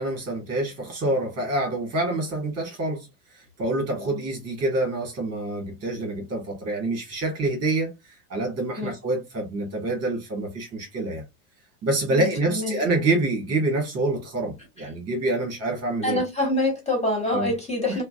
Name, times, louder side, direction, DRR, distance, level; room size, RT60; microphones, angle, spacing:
voice 1, 0.0-3.1 3.3-7.9 8.3-11.2 11.8-16.2 17.3-17.5 17.8-17.9, right 2 dB, 30° right, 1.8 m, -26 dB
voice 2, 12.1-12.8 16.0-18.0, left 1 dB, 15° left, 2.1 m, -26 dB
4.4 x 2.3 x 2.6 m
figure-of-eight pair, 80°, 46 cm